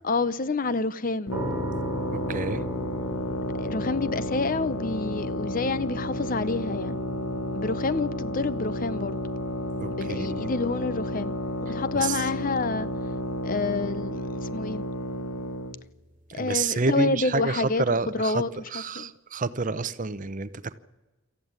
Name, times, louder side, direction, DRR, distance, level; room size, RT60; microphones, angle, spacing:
voice 1, 0.0-1.3 3.6-7.0 7.5-9.2 9.9-11.3 11.6-12.9 13.4-14.8 16.3-17.8 18.1-19.1, left 3 dB, 40° left, 0.6 m, -28 dB
sound 1, 1.3-15.8, left 1 dB, 80° left, 1.2 m, -32 dB
sound 2, 1.3-16.2, right 1 dB, 10° right, 2.9 m, -40 dB
voice 2, 2.3-2.6 9.8-10.5 11.9-12.2 16.4-18.4 18.7-20.8, right 3 dB, 40° right, 0.7 m, -28 dB
24.5 x 14.0 x 9.6 m
head